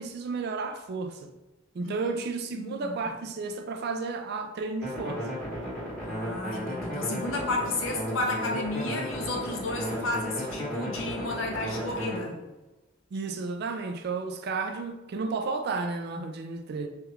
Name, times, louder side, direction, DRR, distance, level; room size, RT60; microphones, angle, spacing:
voice 1, 0.0-1.3 1.7-5.2 13.1-16.9, right 4 dB, 55° right, 0.3 m, -32 dB
voice 2, 1.8-2.2 2.5-3.0 6.0-12.4, left 2 dB, 80° left, 0.7 m, -32 dB
sound 1, 4.8-12.2, equal, 5° left, 1.4 m, -34 dB
3.3 x 2.9 x 2.3 m
head